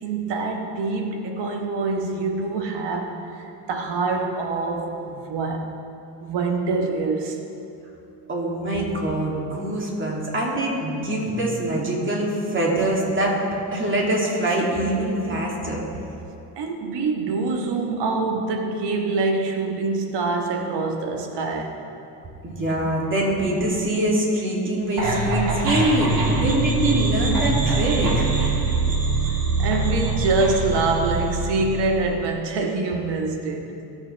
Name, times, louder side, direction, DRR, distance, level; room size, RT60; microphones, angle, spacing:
voice 1, 0.0-5.7 6.2-7.4 16.5-21.8 29.2-33.8, right 3 dB, 70° right, 1.4 m, -25 dB
voice 2, 8.3-13.4 13.7-15.8 22.4-28.5, right 1 dB, 25° right, 2.8 m, -24 dB
sound 1, 25.0-32.1, right 3 dB, 50° right, 2.1 m, -23 dB
17.5 x 7.3 x 3.4 m
cardioid pair, 90°, 43 cm